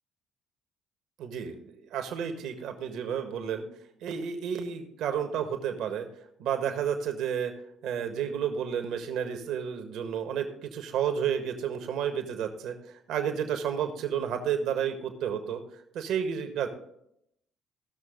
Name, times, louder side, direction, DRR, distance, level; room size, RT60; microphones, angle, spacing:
voice 1, 1.2-3.6 4.0-6.1 6.4-7.5 7.8-12.7 13.1-15.6 15.9-16.7, right 8 dB, 70° right, 6 dB, 1.5 m, -31 dB
16.5 x 6.3 x 3.9 m, 0.74 s
hypercardioid pair, 55°, 0 cm